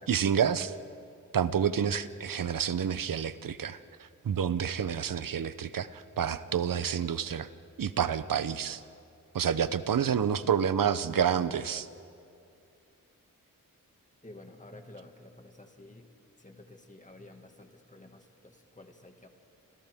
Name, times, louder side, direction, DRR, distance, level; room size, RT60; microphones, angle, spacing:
voice 1, 0.1-0.7 1.3-7.5 7.8-8.8 9.3-11.9, right 8 dB, 75° right, 14 dB, 0.8 m, -29 dB
voice 2, 14.2-16.1 16.4-19.3, left 2 dB, 20° left, 4 dB, 2.0 m, -51 dB
29.0 x 26.0 x 3.7 m, 2.5 s
wide cardioid pair, 90°, 34 cm